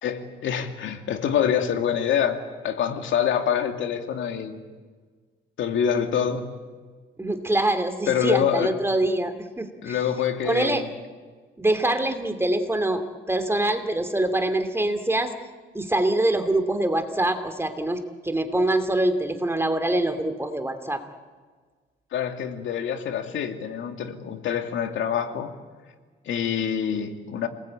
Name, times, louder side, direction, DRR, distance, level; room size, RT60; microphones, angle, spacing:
voice 1, 0.0-4.6 5.6-6.6 8.1-8.7 9.8-10.9 22.1-25.5 26.3-27.5, left 8 dB, 75° left, 5 dB, 2.5 m, -26 dB
voice 2, 7.2-10.0 10.4-10.8 11.6-15.3 15.7-21.0, right 1 dB, 10° right, 8 dB, 2.6 m, -24 dB
28.5 x 20.0 x 8.8 m, 1.5 s
cardioid pair, 90°, 20 cm